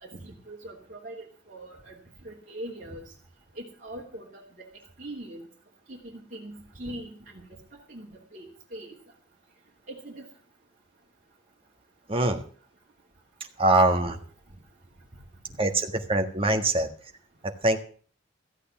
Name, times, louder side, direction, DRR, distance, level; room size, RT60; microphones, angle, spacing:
voice 1, 0.0-2.0 2.2-3.0 3.6-4.7 5.0-5.4 5.9-7.6 7.9-8.9 9.9-10.2, right 1 dB, 45° right, -4 dB, 2.9 m, -41 dB
voice 2, 12.1-12.4 13.6-14.2 15.6-16.9 17.6-17.8, right 2 dB, 30° right, 5 dB, 1.5 m, -23 dB
14.5 x 8.3 x 7.2 m, 0.43 s
head